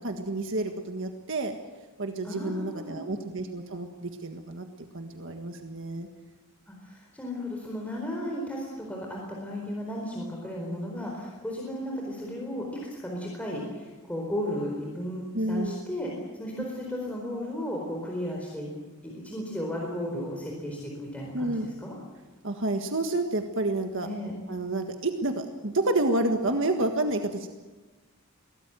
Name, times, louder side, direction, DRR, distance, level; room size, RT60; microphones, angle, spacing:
voice 1, 0.0-1.5 2.0-4.7 4.9-6.1 15.3-15.8 21.3-21.7 22.4-24.1 24.5-27.5, right 2 dB, 60° right, 5 dB, 1.6 m, -29 dB
voice 2, 2.2-3.0 6.7-16.1 16.4-18.7 19.0-21.9 24.0-24.3, equal, 5° left, -2 dB, 4.4 m, -34 dB
22.5 x 18.0 x 9.2 m, 1.2 s
head